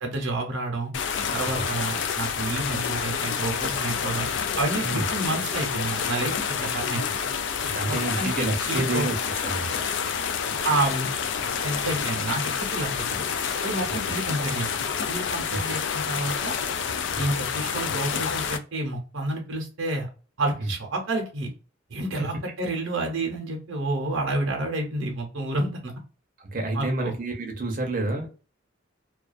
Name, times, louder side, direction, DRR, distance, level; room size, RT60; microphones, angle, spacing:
voice 1, 0.0-0.9 1.3-4.3 4.6-7.1 7.9-9.1 10.6-11.1 11.6-13.2 13.6-14.7 15.1-16.6 17.2-20.1 20.4-21.5 21.9-25.9 26.7-27.1, right 2 dB, 80° right, 0.7 m, -29 dB
sound 1, 0.9-18.6, left 7 dB, 60° left, 0.3 m, -28 dB
voice 2, 7.6-9.8 15.5-15.6 17.1-17.3 20.6-20.7 22.2-22.3 26.4-28.3, right 2 dB, 45° right, 0.6 m, -29 dB
2.3 x 2.2 x 2.4 m
head